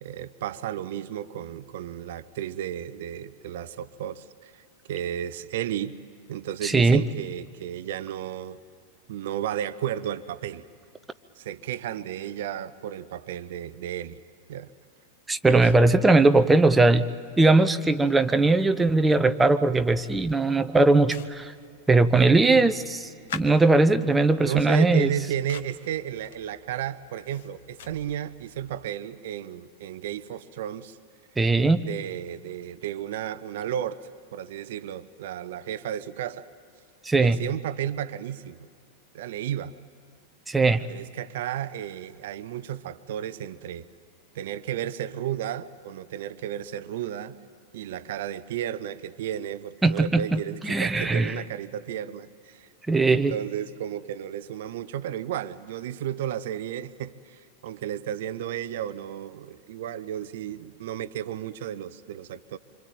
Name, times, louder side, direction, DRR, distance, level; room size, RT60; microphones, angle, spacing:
voice 1, 0.0-6.0 6.3-8.6 9.1-10.6 11.4-14.2 14.5-14.7 15.5-15.7 24.4-31.0 31.8-34.0 34.3-36.5 37.2-38.7 39.1-39.8 40.9-43.9 44.3-47.4 47.7-52.7 53.0-62.6, right 10 dB, 55° right, 15 dB, 0.7 m, -33 dB
voice 2, 6.6-7.0 15.3-17.1 17.4-21.5 21.9-25.1 31.4-31.8 37.0-37.4 40.5-40.8 49.8-51.4 52.9-53.3, right 3 dB, 10° right, 9 dB, 0.8 m, -20 dB
sound 1, 20.0-28.9, left 7 dB, 55° left, 1.6 m, -46 dB
26.0 x 25.5 x 9.0 m, 2.3 s
figure-of-eight pair, 90°, 0 cm